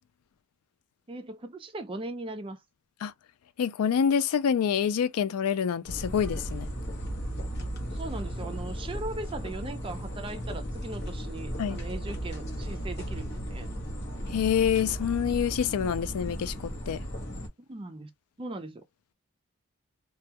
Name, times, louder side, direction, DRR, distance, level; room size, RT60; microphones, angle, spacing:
voice 1, 1.1-2.6 7.9-13.7 17.7-18.1 18.4-18.8, right 2 dB, 25° right, 0.3 m, -39 dB
voice 2, 3.6-6.7 11.6-11.8 14.3-16.5 16.9-17.0, left 8 dB, 85° left, 0.4 m, -26 dB
sound 1, 5.9-17.5, equal, 50° left, 0.9 m, -35 dB
2.2 x 2.2 x 2.7 m
head